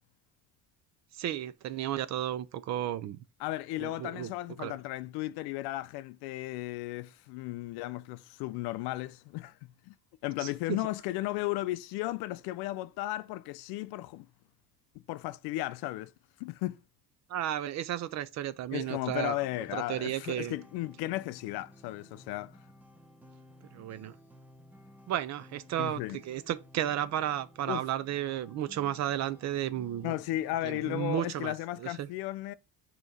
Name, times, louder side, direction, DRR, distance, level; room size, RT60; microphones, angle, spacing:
voice 1, 1.1-3.2 3.8-4.3 4.6-4.7 10.4-10.8 17.3-19.4 19.7-20.6 23.7-24.1 25.1-30.2 30.6-31.5 31.8-32.1, right 11 dB, 45° right, 0.5 m, -33 dB
voice 2, 3.4-9.9 10.2-14.3 15.1-16.1 16.4-16.8 18.7-22.5 25.8-26.2 27.7-27.8 30.0-32.5, left 17 dB, 80° left, 0.5 m, -35 dB
sound 1, 18.9-31.1, equal, 5° right, 0.8 m, -55 dB
6.1 x 3.0 x 5.2 m
cardioid pair, 150°, 38 cm